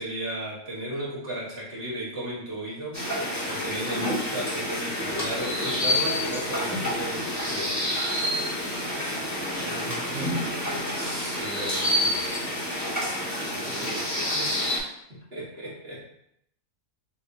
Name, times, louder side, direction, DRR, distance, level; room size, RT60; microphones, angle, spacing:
voice 1, 0.0-3.0 3.5-7.9 11.0-12.3 13.4-13.9 14.3-14.8 15.1-16.0, right 1 dB, 45° right, -6 dB, 1.8 m, -35 dB
sound 1, 2.9-14.8, left 1 dB, 15° left, 1.2 m, -28 dB
voice 2, 9.2-11.4 13.5-14.2, right 4 dB, 65° right, -1 dB, 0.9 m, -40 dB
6.5 x 3.0 x 2.7 m, 0.76 s
omnidirectional pair, 1.4 m